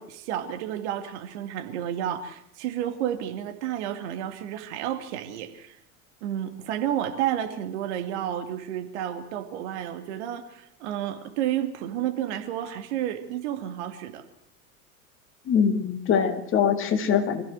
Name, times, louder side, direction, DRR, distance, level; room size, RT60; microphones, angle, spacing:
voice 1, 0.0-5.8 6.2-14.2, right 11 dB, 50° right, 6 dB, 2.6 m, -31 dB
voice 2, 15.5-17.4, left 7 dB, 30° left, 7 dB, 2.1 m, -23 dB
25.0 x 15.0 x 7.7 m, 0.70 s
figure-of-eight pair, 85°, 43 cm